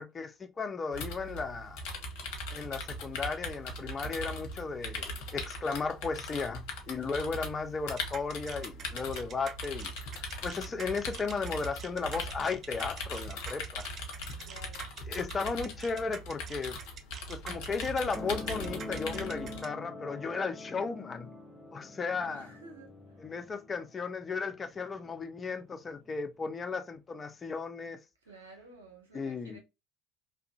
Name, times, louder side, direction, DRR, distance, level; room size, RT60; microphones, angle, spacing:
voice 1, 0.0-1.8 2.5-13.9 15.1-16.8 17.3-21.3 21.7-22.5 23.2-28.0 29.1-29.6, left 4 dB, 30° left, 0.5 m, -35 dB
sound 1, 0.9-19.6, left 2 dB, 65° left, 0.7 m, -40 dB
sound 2, 8.0-19.7, right 6 dB, 45° right, 0.4 m, -46 dB
voice 2, 14.4-14.9 22.2-23.2 28.2-29.6, right 2 dB, 85° right, 0.7 m, -52 dB
sound 3, 18.1-25.2 26.1-26.2, left 2 dB, 20° right, 0.9 m, -45 dB
2.7 x 2.4 x 2.2 m
figure-of-eight pair, 60°, 0 cm